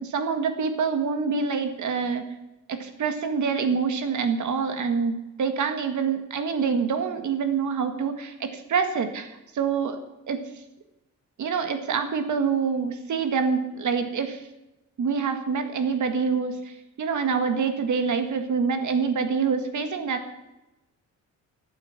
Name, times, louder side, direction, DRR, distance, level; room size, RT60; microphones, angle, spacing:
voice 1, 0.0-2.2 2.7-10.0 10.3-10.4 11.4-14.5 15.0-20.3, right 5 dB, 70° right, 7 dB, 1.9 m, -26 dB
14.0 x 8.4 x 7.4 m, 0.98 s
wide cardioid pair, 150°, 31 cm